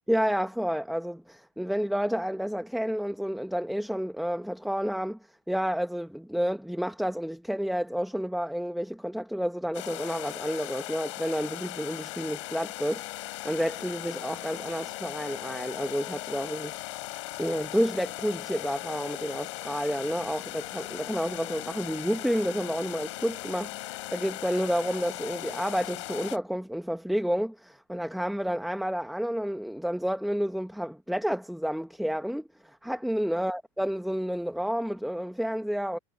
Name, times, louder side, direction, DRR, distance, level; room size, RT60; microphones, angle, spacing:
voice 1, 0.1-5.2 5.5-16.8 17.4-36.0, equal, ahead, 0.9 m, -30 dB
sound 1, 9.7-26.4, left 19 dB, 80° left, 4.7 m, -38 dB
supercardioid pair, 155°, 15 cm